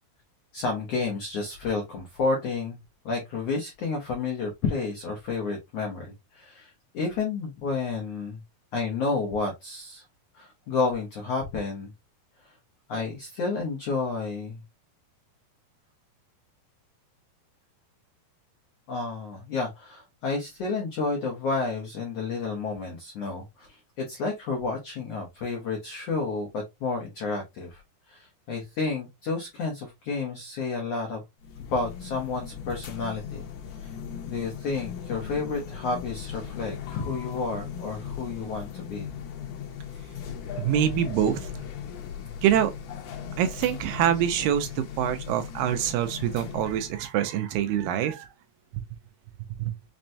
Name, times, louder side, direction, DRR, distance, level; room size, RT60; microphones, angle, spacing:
voice 1, 0.5-2.8 3.0-8.4 8.7-10.0 10.3-11.9 12.4-12.5 12.9-14.6 18.9-27.8 28.1-31.2 31.6-33.5 33.8-33.9 34.3-39.1, left 4 dB, 85° left, 1.4 m, -31 dB
sound 1, 31.4-47.0, left 8 dB, 70° left, 2.1 m, -38 dB
voice 2, 40.6-41.6 42.4-42.7 43.4-48.3 48.7-48.8 49.6-49.8, right 10 dB, 80° right, 2.1 m, -25 dB
6.0 x 2.2 x 2.6 m
omnidirectional pair, 4.2 m